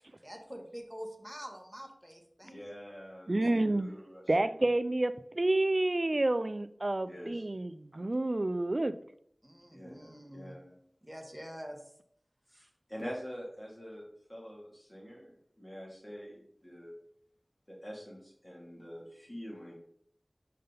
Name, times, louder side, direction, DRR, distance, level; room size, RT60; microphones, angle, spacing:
voice 1, 0.2-2.5 3.4-3.5 9.4-10.5 11.0-11.8 12.5-12.7, equal, 5° right, 1.2 m, -46 dB
voice 2, 2.4-4.2 7.1-7.5 9.7-10.8 12.9-17.0 17.7-19.8, equal, 30° left, 2.5 m, -45 dB
voice 3, 3.3-3.9 4.3-8.9, right 2 dB, 50° right, 0.3 m, -29 dB
5.4 x 5.3 x 3.9 m
wide cardioid pair, 50°, 0 cm